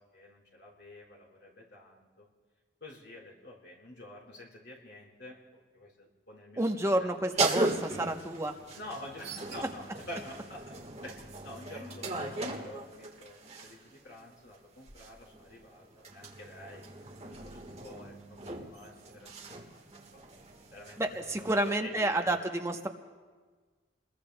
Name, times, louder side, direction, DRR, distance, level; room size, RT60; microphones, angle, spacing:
voice 1, 0.1-2.3 2.8-5.4 5.7-7.1 8.8-10.7 11.0-16.9 17.3-19.8 20.1-20.2 20.7-22.4, left 1 dB, 65° left, -3 dB, 4.3 m, -48 dB
voice 2, 6.6-8.6 21.0-22.9, right 1 dB, 15° right, 4 dB, 0.8 m, -30 dB
sound 1, 7.3-13.9 14.9-21.7, right 2 dB, 35° right, 1.4 m, -38 dB
29.5 x 21.5 x 2.2 m, 1.5 s
head